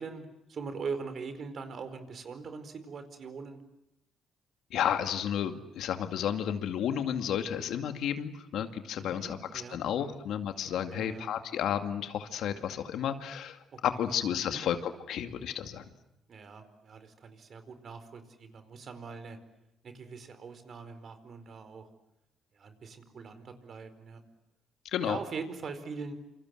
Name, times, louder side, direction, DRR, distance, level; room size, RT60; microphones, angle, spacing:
voice 1, 0.0-3.6 9.2-10.2 10.9-11.3 13.7-13.8 14.5-14.6 16.3-19.4 19.8-21.9 22.5-24.2 25.0-26.1, right 5 dB, 55° right, 10 dB, 4.5 m, -42 dB
voice 2, 4.7-15.8 24.9-25.2, left 9 dB, 80° left, 7 dB, 2.3 m, -32 dB
27.5 x 27.0 x 7.9 m, 0.87 s
cardioid pair, 90°, 0 cm